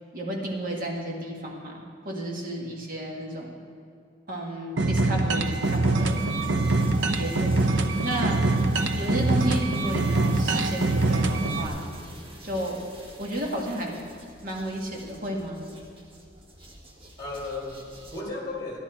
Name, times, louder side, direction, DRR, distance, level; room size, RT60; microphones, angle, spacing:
voice 1, 0.1-3.5 4.3-6.2 7.2-8.5 8.9-11.8 12.4-12.8 13.2-13.9 14.4-15.6, right 1 dB, 45° right, -1 dB, 1.7 m, -32 dB
sound 1, 4.8-11.7, right 2 dB, 65° right, 0.7 m, -24 dB
sound 2, 5.4-18.2, equal, 25° right, 1.4 m, -46 dB
voice 2, 17.2-18.8, left 2 dB, 20° left, -2 dB, 2.4 m, -36 dB
12.5 x 11.5 x 4.4 m, 2.4 s
head